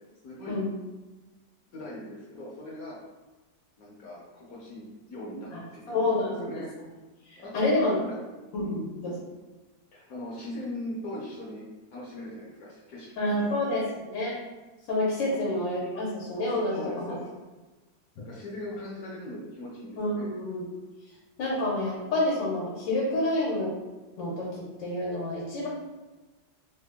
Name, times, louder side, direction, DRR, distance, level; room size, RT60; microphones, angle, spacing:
voice 1, 0.2-0.6 1.7-3.0 3.8-5.5 5.9-6.7 7.4-7.7 8.0-8.2 8.6-8.7 9.9-11.7 11.9-13.6 15.3-15.5 16.7-17.3 18.2-20.3, left 1 dB, 65° left, -5 dB, 1.0 m, -40 dB
voice 2, 5.9-6.5 7.3-8.0 8.5-9.1 13.2-14.3 14.9-16.8 17.1-17.2 20.0-20.7 21.4-23.7 24.2-25.7, left 1 dB, 85° left, -5 dB, 1.5 m, -28 dB
3.6 x 2.1 x 3.4 m, 1.2 s
omnidirectional pair, 2.0 m